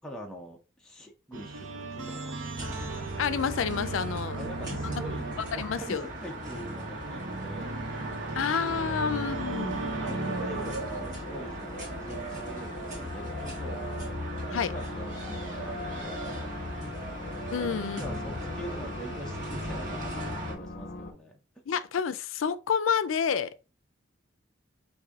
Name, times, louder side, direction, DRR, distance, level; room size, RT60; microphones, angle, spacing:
voice 1, 0.0-2.6 4.4-8.0 8.7-9.0 10.0-13.9 14.5-16.3 17.4-21.4, right 1 dB, 5° left, 0.6 m, -44 dB
sound 1, 1.3-11.4, right 2 dB, 70° right, 0.7 m, -36 dB
sound 2, 2.6-20.6, equal, 45° right, 1.4 m, -38 dB
voice 2, 3.2-4.4 4.7-5.0 5.5-6.1 8.4-9.8 14.5-14.7 17.5-18.0 21.7-23.5, left 7 dB, 90° left, 0.4 m, -29 dB
sound 3, 9.2-21.1, left 2 dB, 50° left, 0.7 m, -41 dB
4.9 x 2.6 x 3.5 m
head